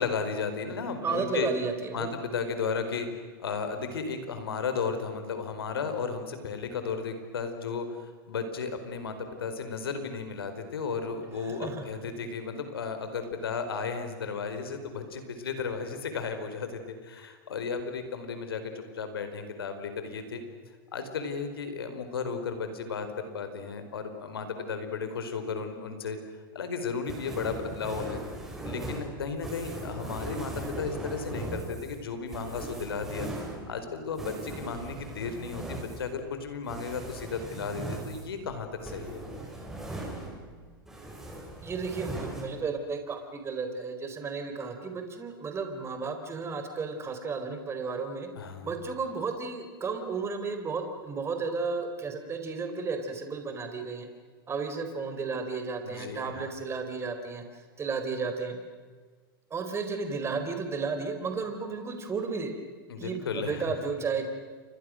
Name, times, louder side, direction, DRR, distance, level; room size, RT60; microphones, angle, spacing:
voice 1, 0.0-1.5 1.9-3.1 3.4-20.4 20.9-26.2 26.5-28.2 28.6-33.3 33.7-39.2 48.4-48.7 55.8-56.5 62.9-63.7, left 5 dB, 85° left, 8 dB, 4.5 m, -34 dB
voice 2, 1.0-2.1 11.4-11.8 41.6-48.3 48.6-54.1 54.5-58.6 59.5-62.6 63.0-64.3, right 4 dB, 20° right, 6 dB, 4.3 m, -33 dB
sound 1, 27.1-40.6 40.9-42.4, right 1 dB, 5° right, 7.5 m, -39 dB
29.5 x 25.5 x 6.5 m, 1.5 s
hypercardioid pair, 115°, 12 cm